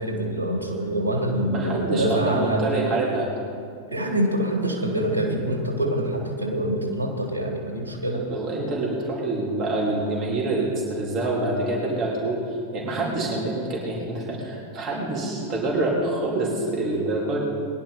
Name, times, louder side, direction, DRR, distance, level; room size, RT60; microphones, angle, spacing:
voice 1, 0.0-2.6 3.9-8.3, right 1 dB, 85° left, 0 dB, 2.5 m, -25 dB
voice 2, 1.5-3.3 8.1-17.4, right 2 dB, 35° right, -4 dB, 3.4 m, -26 dB
21.5 x 11.0 x 4.1 m, 2.4 s
figure-of-eight pair, 90°, 0 cm